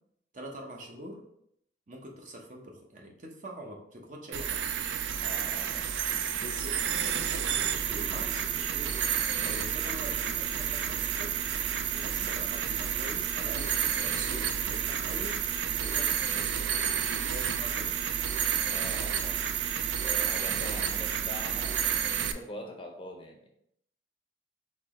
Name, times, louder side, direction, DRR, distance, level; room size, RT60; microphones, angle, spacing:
voice 1, 0.3-1.2 1.9-4.6 6.3-8.9 9.4-11.3 11.9-15.3 15.7-16.6 17.3-17.9, right 1 dB, 45° right, 0 dB, 0.8 m, -44 dB
sound 1, 4.3-22.3, right 8 dB, 90° right, 0.4 m, -30 dB
voice 2, 5.2-5.9 12.2-12.4 18.7-19.5 20.0-23.5, left 1 dB, 30° left, 2 dB, 0.6 m, -43 dB
4.6 x 3.0 x 3.6 m, 0.73 s
head